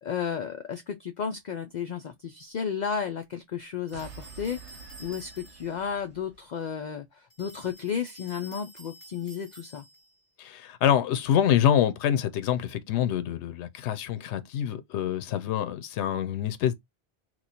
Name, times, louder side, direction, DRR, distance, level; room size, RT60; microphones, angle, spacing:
voice 1, 0.0-4.6 5.0-9.9, left 7 dB, 55° left, 0.5 m, -33 dB
sound 1, 3.9-5.8 7.3-10.2, equal, 30° left, 1.5 m, -50 dB
sound 2, 3.9-6.5, right 6 dB, 90° right, 1.0 m, -48 dB
voice 2, 10.4-16.7, left 10 dB, 85° left, 0.9 m, -26 dB
3.0 x 2.3 x 4.0 m
omnidirectional pair, 1.1 m